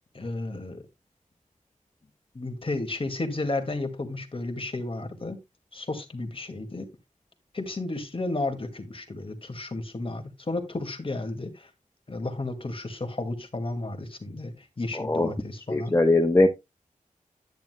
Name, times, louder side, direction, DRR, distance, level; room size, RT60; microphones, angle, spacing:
voice 1, 0.1-0.8 2.3-5.4 5.7-6.9 7.5-11.7 12.1-15.9, left 2 dB, 40° left, 2.1 m, -33 dB
voice 2, 14.9-15.3 15.7-16.5, left 2 dB, 20° left, 1.0 m, -20 dB
10.5 x 9.4 x 2.2 m
cardioid pair, 65°, 14 cm